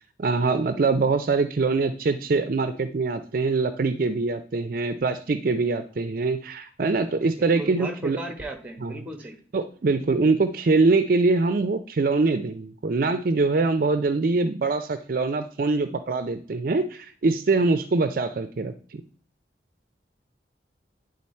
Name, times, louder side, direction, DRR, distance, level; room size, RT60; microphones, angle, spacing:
voice 1, 0.2-8.2 8.8-8.9 9.5-18.7, right 3 dB, 55° right, 10 dB, 0.4 m, -23 dB
voice 2, 7.4-9.4, right 1 dB, 10° right, 4 dB, 1.0 m, -36 dB
9.7 x 3.9 x 4.2 m, 0.44 s
head